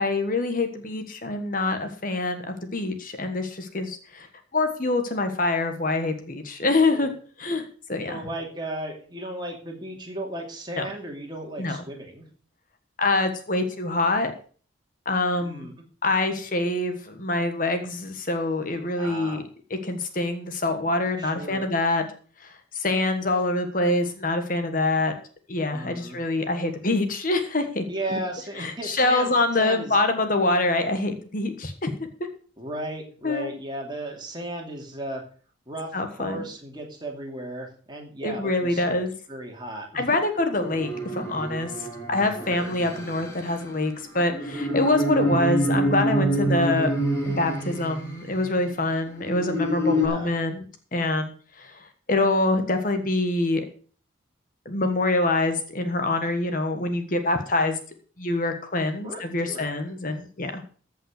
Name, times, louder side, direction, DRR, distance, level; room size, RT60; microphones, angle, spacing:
voice 1, 0.0-4.3 4.5-7.1 7.4-8.2 10.8-10.9 11.6-11.8 13.0-14.3 15.0-15.7 16.0-19.4 19.7-22.0 22.4-25.1 25.5-27.8 28.1-28.2 28.6-31.9 33.2-33.5 35.9-36.4 38.2-39.1 39.9-46.9 47.3-50.6 50.9-53.6 54.6-57.8 58.2-60.6, left 2 dB, 45° left, 6 dB, 1.4 m, -25 dB
voice 2, 8.0-12.3 15.4-15.7 19.0-19.4 21.2-21.7 25.7-26.2 27.9-30.0 32.6-35.2 35.7-39.0 39.3-40.0 42.4-42.7 46.3-46.6 49.9-50.4 57.5-57.6 59.0-59.7, right 1 dB, 25° right, 0 dB, 2.8 m, -35 dB
sound 1, 40.6-48.4 49.1-50.1, equal, 15° left, 3.5 m, -27 dB
14.5 x 5.6 x 6.5 m, 0.42 s
head